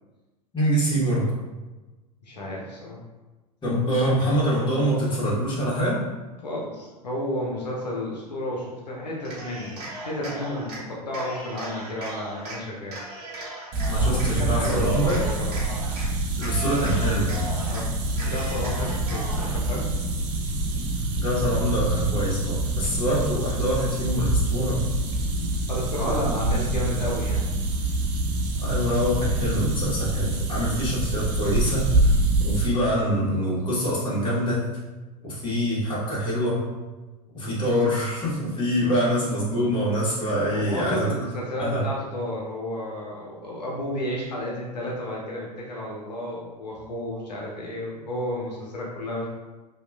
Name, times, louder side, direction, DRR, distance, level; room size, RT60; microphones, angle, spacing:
voice 1, 0.5-1.3 3.6-6.0 13.9-15.2 16.4-17.6 21.2-24.8 26.0-26.3 26.8-27.0 28.6-32.1 32.4-34.7 35.2-36.6 37.3-41.1 41.6-41.8, equal, 20° left, -8 dB, 1.3 m, -25 dB
voice 2, 2.2-3.0 6.4-13.0 14.1-15.5 16.6-16.8 17.7-17.9 18.2-19.9 25.7-27.5 37.4-37.6 38.8-38.9 40.5-49.3, left 1 dB, 85° left, -3 dB, 0.6 m, -32 dB
Cheering, 9.2-10.8 11.1-12.6 12.9-14.3 14.6-16.1 16.3-17.8 18.1-19.6, right 2 dB, 70° right, 1.0 m, -37 dB
sound 1, 13.7-32.7, right 2 dB, 45° right, 0.5 m, -26 dB
2.8 x 2.4 x 2.2 m, 1.2 s
figure-of-eight pair, 90°, 21 cm